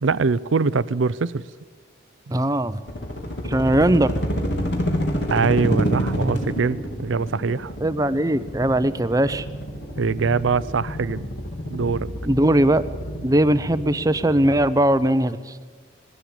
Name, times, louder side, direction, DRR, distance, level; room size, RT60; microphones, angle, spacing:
voice 1, 0.0-1.3 5.3-7.7 10.0-11.2 11.7-12.1, right 4 dB, 85° right, 18 dB, 0.6 m, -22 dB
voice 2, 2.3-2.8 3.5-4.1 7.8-9.5 12.2-12.8 13.2-15.6, right 1 dB, 20° right, 13 dB, 0.7 m, -20 dB
sound 1, 2.9-14.6, equal, 65° left, 3.4 m, -28 dB
20.5 x 16.5 x 8.5 m, 1.5 s
head